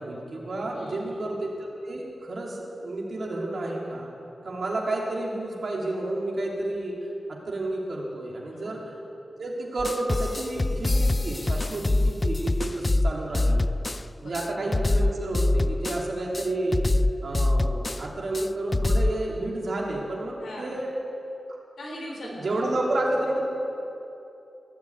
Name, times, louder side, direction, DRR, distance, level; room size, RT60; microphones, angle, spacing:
voice 1, 0.0-1.5 1.8-4.1 4.4-7.0 7.3-8.9 9.4-13.6 14.2-16.8 17.2-20.9 22.2-23.5, right 2 dB, 70° right, -2 dB, 2.9 m, -30 dB
voice 2, 0.7-1.2 8.5-8.8 14.2-14.6 20.4-20.7 21.8-22.5 22.9-23.0, left 1 dB, 85° left, -2 dB, 3.9 m, -40 dB
sound 1, 9.8-14.0 14.3-14.5 14.7-16.0 16.3-16.5 16.7-18.0 18.3-18.5 18.7-19.1, left 2 dB, 35° left, 0.4 m, -24 dB
18.0 x 7.4 x 8.6 m, 2.9 s
cardioid pair, 45°, 0 cm